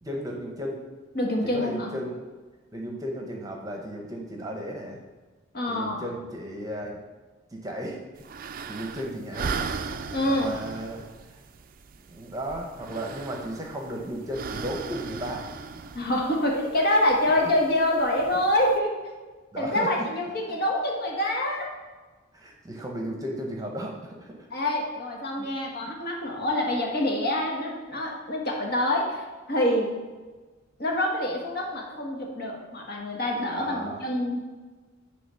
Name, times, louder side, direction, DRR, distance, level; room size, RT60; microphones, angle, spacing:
voice 1, 0.0-0.8 1.4-2.2 2.7-5.0 5.7-7.0 7.5-8.2 8.6-9.6 10.2-11.4 12.1-15.5 17.4-17.5 19.5-19.9 20.5-20.6 22.3-24.5 25.4-25.5 25.8-25.9 33.5-34.0, equal, 15° right, 0 dB, 0.9 m, -35 dB
voice 2, 1.1-1.9 5.5-6.0 10.1-10.6 15.9-19.0 19.6-21.7 24.5-29.9 30.8-34.4, left 1 dB, 50° left, -1 dB, 1.5 m, -26 dB
sound 1, 8.2-18.8, right 5 dB, 45° right, 0.4 m, -38 dB
9.3 x 3.3 x 5.6 m, 1.3 s
head